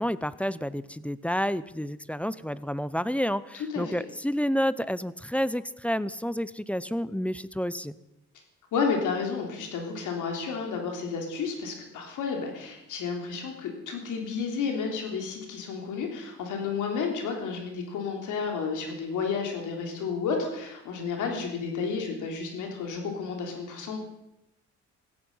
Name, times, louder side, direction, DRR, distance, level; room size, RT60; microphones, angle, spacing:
voice 1, 0.0-8.0, equal, 5° left, 17 dB, 0.6 m, -29 dB
voice 2, 8.7-24.0, left 5 dB, 80° left, 2 dB, 3.4 m, -31 dB
16.0 x 13.5 x 5.5 m, 0.90 s
cardioid pair, 90°, 30 cm